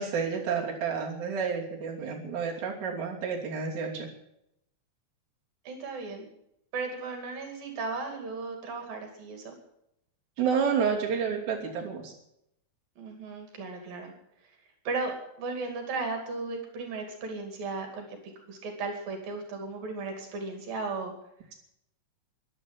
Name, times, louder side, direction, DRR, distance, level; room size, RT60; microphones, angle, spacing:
voice 1, 0.0-4.1 10.4-12.1, right 6 dB, 55° right, -1 dB, 4.1 m, -30 dB
voice 2, 5.7-6.2 6.7-9.6 13.0-14.1 14.9-21.1, right 3 dB, 75° right, 4 dB, 4.3 m, -36 dB
15.5 x 11.0 x 7.5 m, 0.78 s
omnidirectional pair, 4.1 m